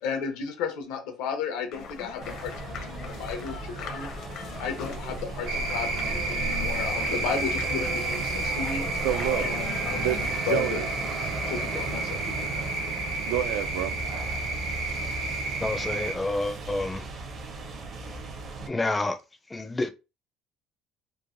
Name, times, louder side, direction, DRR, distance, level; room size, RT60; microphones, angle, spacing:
voice 1, 0.0-4.1 4.6-8.9 9.4-10.8 11.1-11.2 11.5-13.2, left 6 dB, 90° left, 0.8 m, -34 dB
sound 1, 1.7-10.3, left 3 dB, 55° left, 0.6 m, -38 dB
sound 2, 2.2-18.7, right 3 dB, 40° right, 0.6 m, -36 dB
sound 3, 5.5-16.1, right 2 dB, 60° right, 0.9 m, -31 dB
voice 2, 9.0-9.5 10.0-10.9 13.2-14.0, right 12 dB, 85° right, 0.3 m, -28 dB
voice 3, 15.6-17.0 18.7-19.1 19.5-19.9, left 2 dB, 10° left, 0.4 m, -28 dB
3.1 x 2.1 x 2.6 m
cardioid pair, 150°, 0 cm